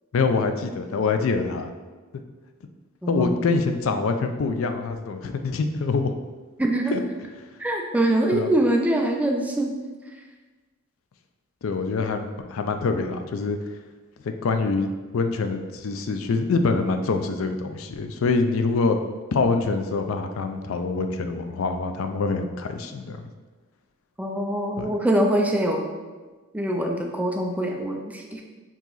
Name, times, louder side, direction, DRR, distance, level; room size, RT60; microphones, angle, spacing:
voice 1, 0.1-1.7 3.1-6.1 6.9-7.0 8.3-8.5 11.6-13.6 14.2-19.0 19.3-23.2 24.8-24.9, left 4 dB, 65° left, 7 dB, 0.4 m, -25 dB
voice 2, 3.0-3.4 6.6-6.9 7.6-9.7 24.2-25.9 26.5-28.4, right 1 dB, 5° right, 1 dB, 0.4 m, -23 dB
4.7 x 2.9 x 3.9 m, 1.3 s
head